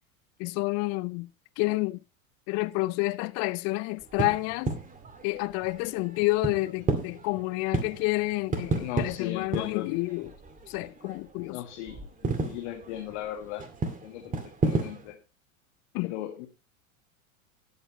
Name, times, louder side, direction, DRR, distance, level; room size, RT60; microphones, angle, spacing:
voice 1, 0.4-1.3 1.6-2.0 2.5-4.7 5.2-10.3 10.7-11.6 15.9-16.1, left 22 dB, 40° left, 0.6 m, -29 dB
sound 1, 4.0-11.5 11.7-15.1, right 3 dB, 20° right, 2.2 m, -33 dB
voice 2, 8.8-9.9 11.5-12.0 12.4-13.6 14.0-14.4 14.6-15.2 16.0-16.5, left 13 dB, 55° left, 2.0 m, -36 dB
20.0 x 8.1 x 3.0 m
hypercardioid pair, 90°, 41 cm